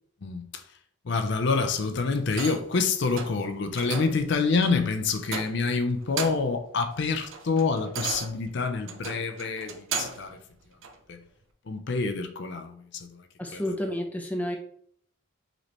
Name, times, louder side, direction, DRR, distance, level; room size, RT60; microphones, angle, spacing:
voice 1, 0.2-0.6 1.0-10.4 11.1-11.2 11.7-13.3 13.5-13.6, left 4 dB, 55° left, 0.5 m, -27 dB
sound 1, 2.3-2.8 3.1-3.4 3.8-4.2 4.6-4.8 5.2-5.7 6.0-6.6 7.0-10.3 10.8-11.0, right 5 dB, 70° right, 0.6 m, -35 dB
voice 2, 13.4-14.6, left 1 dB, 5° left, 0.5 m, -30 dB
5.1 x 3.2 x 3.0 m
head